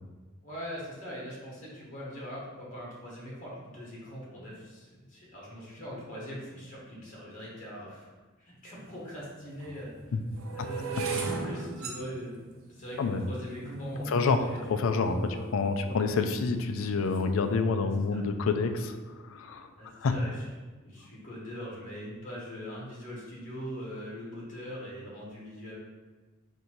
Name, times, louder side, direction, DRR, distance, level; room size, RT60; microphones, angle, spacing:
voice 1, 0.4-8.1 8.4-10.0 10.5-11.1 11.4-12.4 12.7-14.6 15.3-15.4 15.8-16.0 17.8-18.2 19.8-20.4 20.8-25.8, equal, 40° left, -5 dB, 1.2 m, -41 dB
sound 1, 8.7-8.8 9.5-15.7 16.3-16.7 17.0-17.3, right 4 dB, 85° right, 0.6 m, -38 dB
voice 2, 14.1-14.4 14.7-20.1, left 4 dB, 75° left, 7 dB, 0.4 m, -28 dB
3.9 x 2.7 x 4.4 m, 1.3 s
head